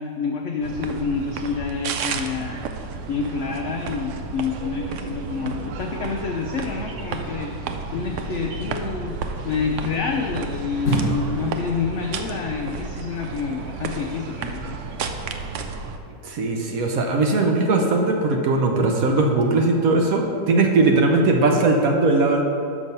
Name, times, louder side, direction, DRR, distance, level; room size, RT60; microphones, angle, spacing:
voice 1, 0.0-2.6 3.1-9.2 9.4-14.8, left 5 dB, 85° left, 2 dB, 0.6 m, -28 dB
sound 1, 0.6-16.0, right 5 dB, 90° right, 0.6 m, -32 dB
sound 2, 7.9-9.6 10.8-12.4 12.6-12.7, equal, 35° left, 1.2 m, -29 dB
voice 2, 16.2-22.4, right 3 dB, 65° right, 2 dB, 1.0 m, -19 dB
6.2 x 6.0 x 5.4 m, 2.6 s
omnidirectional pair, 1.8 m